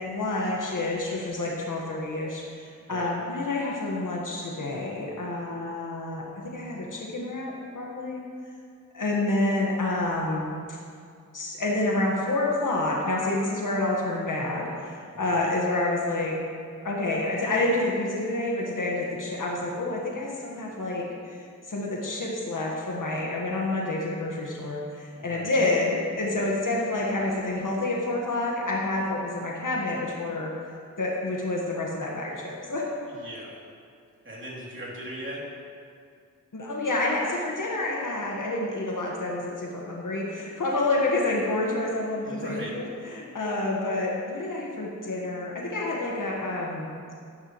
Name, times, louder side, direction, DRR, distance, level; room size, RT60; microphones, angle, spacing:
voice 1, 0.0-8.2 8.9-10.8 11.3-16.4 16.8-30.5 31.0-32.8 36.5-46.9, left 2 dB, 75° left, -3 dB, 1.5 m, -28 dB
voice 2, 15.1-15.5 25.1-25.5 33.1-33.6 34.2-35.4 42.2-42.7, right 1 dB, 40° right, -5 dB, 2.9 m, -39 dB
12.5 x 10.5 x 3.1 m, 2.3 s
wide cardioid pair, 60°, 32 cm